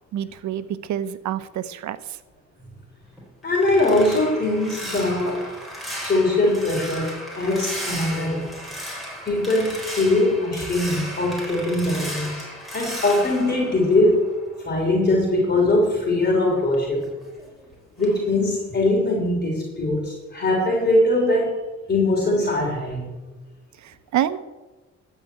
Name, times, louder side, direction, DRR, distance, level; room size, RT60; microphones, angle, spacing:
voice 1, 0.1-2.2 23.8-24.4, right 11 dB, 70° right, 14 dB, 0.8 m, -27 dB
sound 1, 3.0-14.7 15.0-17.7 18.0-18.3 18.7-18.9, equal, ahead, 3.9 m, -35 dB
voice 2, 3.4-5.5 5.9-8.5 9.3-12.5 12.7-14.3 14.6-17.1 18.0-21.5 21.9-23.2, left 2 dB, 35° left, -2 dB, 3.2 m, -21 dB
13.0 x 4.9 x 8.0 m, 1.2 s
cardioid pair, 90°, 30 cm